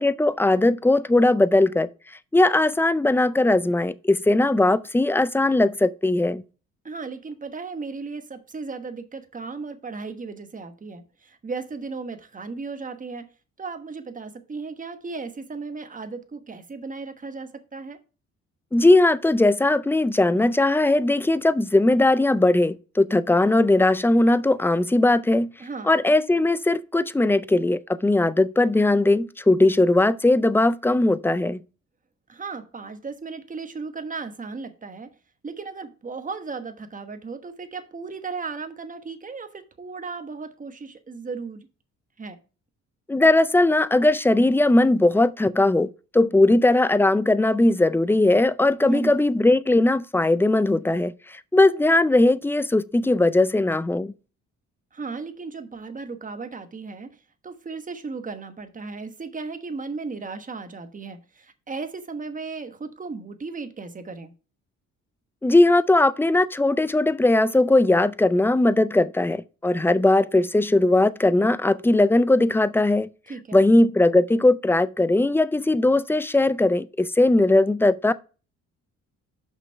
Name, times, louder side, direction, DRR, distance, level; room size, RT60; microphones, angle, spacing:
voice 1, 0.0-1.9 2.3-6.4 18.7-25.5 25.8-31.6 43.1-54.1 65.4-73.1 73.5-78.1, left 2 dB, 10° left, 0.4 m, -19 dB
voice 2, 6.8-13.3 13.6-18.0 25.6-26.0 32.3-35.1 35.4-41.7 42.2-42.4 48.8-49.2 54.9-57.2 57.4-64.3 73.3-73.7, right 4 dB, 25° right, 1.2 m, -35 dB
5.9 x 5.7 x 4.4 m
cardioid pair, 90°, 30 cm